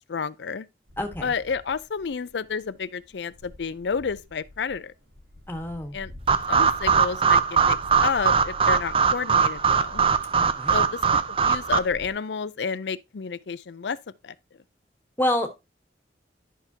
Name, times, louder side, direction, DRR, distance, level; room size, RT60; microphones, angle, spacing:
voice 1, 0.1-0.7 1.2-4.9 5.9-6.1 6.5-10.0 10.7-14.0 14.2-14.3, left 5 dB, 75° left, 0.5 m, -30 dB
sound 1, 0.9-12.1, left 1 dB, 85° right, 4.8 m, -47 dB
voice 2, 1.0-1.3 5.5-6.0 10.3-10.8 15.2-15.5, left 1 dB, 10° left, 1.3 m, -28 dB
sound 2, 6.3-11.8, right 6 dB, 30° right, 0.5 m, -21 dB
11.0 x 5.9 x 2.8 m
head